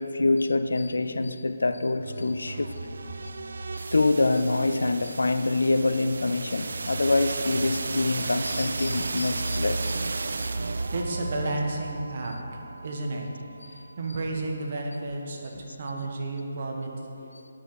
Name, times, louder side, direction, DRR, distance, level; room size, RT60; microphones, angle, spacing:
voice 1, 0.0-2.8 3.7-10.0 10.4-10.5, left 2 dB, 80° left, 10 dB, 0.5 m, -25 dB
sound 1, 2.0-13.9, right 3 dB, 70° right, 0.4 m, -34 dB
voice 2, 10.9-16.9, right 2 dB, 50° right, 1 dB, 1.4 m, -32 dB
9.7 x 6.1 x 5.7 m, 2.7 s
figure-of-eight pair, 150°, 0 cm